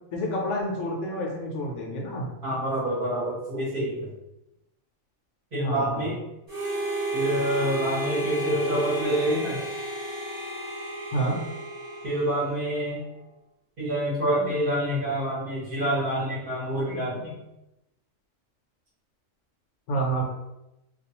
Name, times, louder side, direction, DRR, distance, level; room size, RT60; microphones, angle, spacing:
voice 1, 0.1-2.3 5.6-6.1 11.1-11.4 19.9-20.2, right 1 dB, 70° left, -1 dB, 0.9 m, -28 dB
voice 2, 2.4-4.1 5.5-6.2 7.1-9.6 12.0-13.0 13.8-17.3, right 1 dB, 45° right, -7 dB, 1.0 m, -27 dB
Harmonica, 6.5-12.8, right 2 dB, 20° right, 0.7 m, -32 dB
2.4 x 2.3 x 2.8 m, 0.91 s
omnidirectional pair, 1.4 m